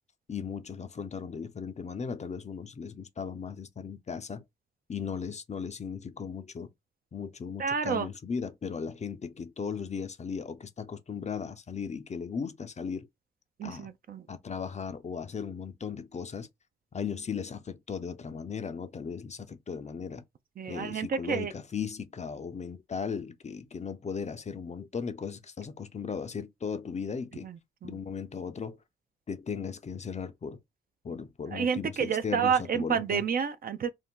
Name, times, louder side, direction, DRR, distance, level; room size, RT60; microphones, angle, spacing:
voice 1, 0.3-4.4 4.9-6.7 7.1-13.1 13.6-13.9 14.3-16.5 16.9-20.2 20.7-27.5 27.8-28.8 29.3-30.6 31.0-33.3, left 6 dB, 35° left, 0.5 m, -37 dB
voice 2, 7.6-8.1 13.6-14.2 20.6-21.5 27.4-27.6 27.8-27.9 31.5-33.9, right 7 dB, 45° right, 0.4 m, -29 dB
2.6 x 2.1 x 3.6 m
supercardioid pair, 50°, 20 cm